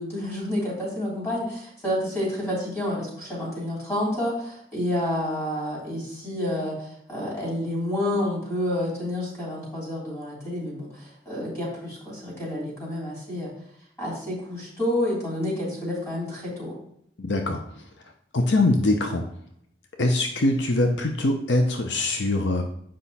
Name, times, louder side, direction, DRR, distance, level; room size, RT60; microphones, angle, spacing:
voice 1, 0.0-13.5 14.0-16.8, left 1 dB, 15° left, -5 dB, 3.3 m, -29 dB
voice 2, 17.2-17.6 18.3-19.2 20.0-22.6, left 2 dB, 80° left, 4 dB, 0.7 m, -23 dB
7.7 x 5.1 x 4.1 m, 0.69 s
head